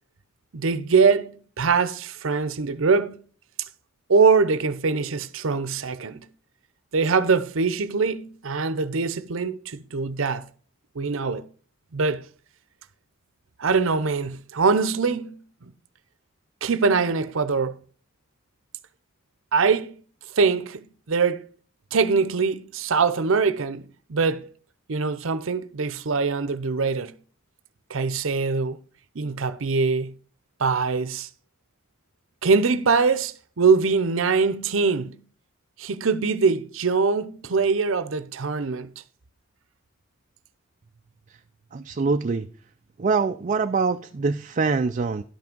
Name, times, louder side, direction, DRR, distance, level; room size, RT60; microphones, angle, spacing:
voice 1, 0.5-3.2 4.1-6.3 6.9-10.4 11.0-11.4 11.9-12.2 13.6-15.4 16.6-17.8 19.5-20.0 20.4-21.4 21.9-23.8 24.1-24.4 24.9-27.1 27.9-28.8 29.1-30.1 30.6-31.3 32.4-35.2 35.8-38.9, right 4 dB, 75° right, 0.7 m, -23 dB
voice 2, 41.7-42.5 43.0-45.2, right 4 dB, 40° right, 0.4 m, -24 dB
11.5 x 5.9 x 5.2 m
head